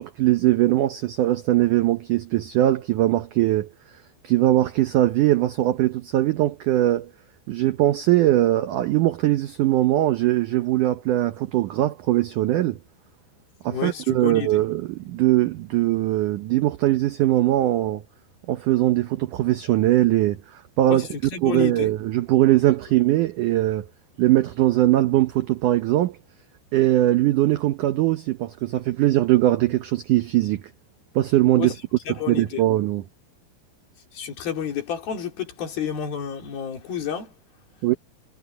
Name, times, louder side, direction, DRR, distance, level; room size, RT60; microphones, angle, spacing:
voice 1, 0.0-3.7 4.2-7.1 7.5-12.8 13.6-18.0 18.5-21.1 21.4-23.9 24.2-26.2 26.7-30.6 31.1-31.7 32.1-33.0 37.8-37.9, right 15 dB, 80° right, 1.8 m, -21 dB
voice 2, 13.7-14.6 20.9-21.9 31.6-31.7 32.1-32.6 34.1-37.3, left 8 dB, 65° left, 4.9 m, -30 dB
omnidirectional pair, 4.8 m